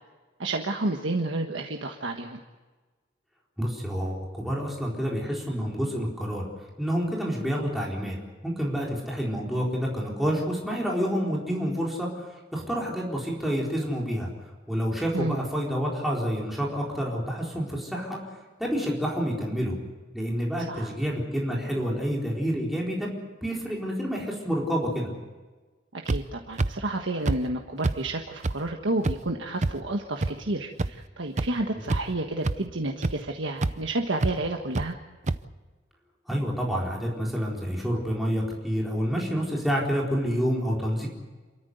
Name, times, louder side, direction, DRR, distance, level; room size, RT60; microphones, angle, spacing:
voice 1, 0.4-2.4 15.1-15.4 20.7-20.9 25.9-35.0, right 2 dB, 80° right, 2 dB, 1.5 m, -30 dB
voice 2, 3.6-6.5 6.8-8.2 8.4-14.3 14.7-18.2 18.6-19.8 20.1-25.1 36.3-41.1, equal, ahead, -3 dB, 4.1 m, -28 dB
sound 1, 26.1-26.2 26.6-26.7 27.3-27.4 27.8-28.0 28.4-28.5 29.0-29.2 29.6-29.7 30.2-30.3 30.8-30.9 31.4-31.5 31.9-32.1 32.4-32.6 33.0-33.1 33.6-33.7 34.2-34.3 34.8-34.9 35.3-35.4, right 2 dB, 40° right, 0.7 m, -25 dB
28.5 x 13.5 x 8.0 m, 1.3 s
head